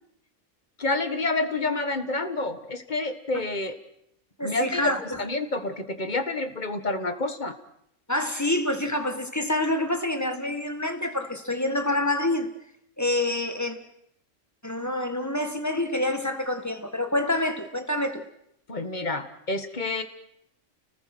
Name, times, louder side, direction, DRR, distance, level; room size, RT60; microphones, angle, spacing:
voice 1, 0.8-3.8 4.4-7.6 18.7-20.0, left 2 dB, 35° left, 1.7 m, -28 dB
voice 2, 4.4-5.2 8.1-12.5 13.0-13.8 14.6-18.3, left 1 dB, 15° left, 1.7 m, -27 dB
30.0 x 19.5 x 6.2 m
omnidirectional pair, 1.3 m